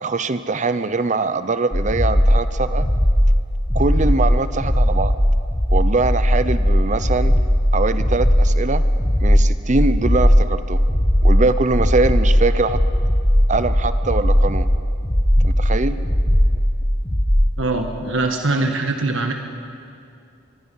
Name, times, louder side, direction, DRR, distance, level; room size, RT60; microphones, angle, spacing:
voice 1, 0.0-2.9 3.7-5.1 5.7-7.3 7.7-8.8 9.2-10.8 11.2-12.8 13.5-14.7 15.4-16.0, right 3 dB, 40° right, 12 dB, 0.7 m, -22 dB
sound 1, 1.7-17.6, equal, 20° left, 1.2 m, -18 dB
voice 2, 17.6-19.3, right 2 dB, 80° right, 4 dB, 1.5 m, -22 dB
24.5 x 23.0 x 5.6 m, 2.4 s
head